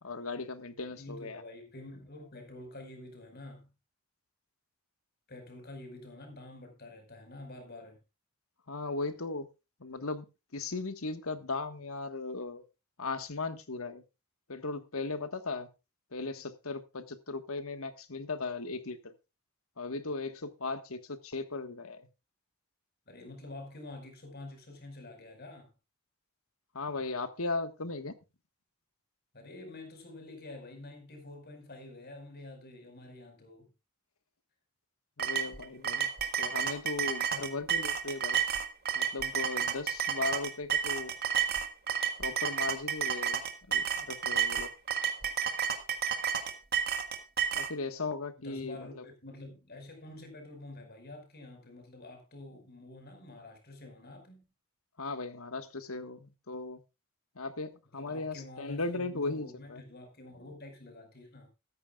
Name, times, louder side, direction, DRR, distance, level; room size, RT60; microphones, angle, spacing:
voice 1, 0.0-1.4 8.7-9.5 9.8-10.3 10.5-12.6 13.0-14.0 14.5-15.7 16.1-19.1 19.8-22.1 26.7-28.2 35.2-36.1 36.4-38.4 38.9-41.1 42.2-43.4 43.7-44.7 47.5-49.0 55.0-56.8 57.3-59.8, left 3 dB, 70° left, 1.4 m, -37 dB
voice 2, 0.9-3.7 5.3-8.0 23.1-25.7 29.3-33.7 48.4-54.4 57.9-61.5, left 2 dB, 45° left, 4.9 m, -48 dB
sound 1, 35.2-47.7, right 7 dB, 45° right, 1.5 m, -31 dB
14.5 x 13.5 x 2.4 m
head